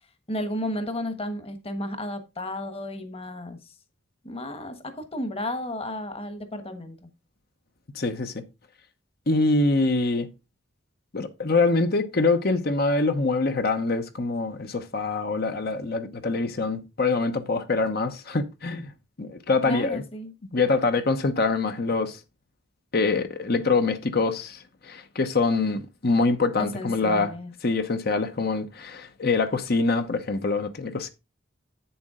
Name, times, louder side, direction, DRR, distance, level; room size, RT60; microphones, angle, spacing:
voice 1, 0.3-3.6 4.2-7.1 19.6-20.3 26.6-27.5, left 1 dB, 30° left, 1.3 m, -33 dB
voice 2, 7.9-8.4 9.3-10.3 11.1-18.9 19.2-20.0 20.5-22.2 22.9-27.3 27.6-31.1, left 3 dB, 55° left, 0.9 m, -24 dB
8.7 x 7.0 x 3.7 m
head